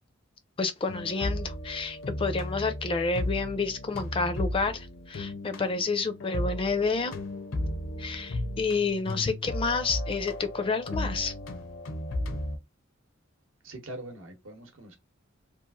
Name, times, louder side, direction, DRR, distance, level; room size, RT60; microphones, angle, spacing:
voice 1, 0.6-7.1 8.0-11.3, left 4 dB, 25° left, 0.4 m, -29 dB
sound 1, 0.9-12.6, left 1 dB, 80° left, 0.6 m, -35 dB
voice 2, 13.6-15.0, right 1 dB, 70° right, 0.9 m, -42 dB
3.0 x 2.4 x 2.4 m
head